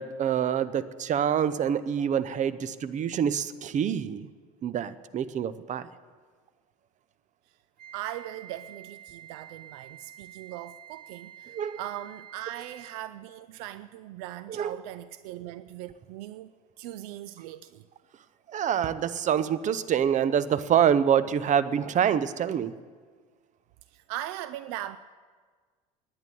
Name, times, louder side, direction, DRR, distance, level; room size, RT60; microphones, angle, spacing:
voice 1, 0.0-4.3 4.6-5.9 11.5-11.8 14.5-14.8 18.5-22.7, right 8 dB, 40° right, 15 dB, 0.7 m, -26 dB
Wind instrument woodwind instrument, 7.8-13.1, right 10 dB, 55° right, 1.5 m, -49 dB
voice 2, 7.9-16.5 16.8-17.8 23.9-25.0, right 13 dB, 70° right, 14 dB, 0.4 m, -39 dB
10.5 x 9.3 x 9.2 m, 1.5 s
hypercardioid pair, 75°, 19 cm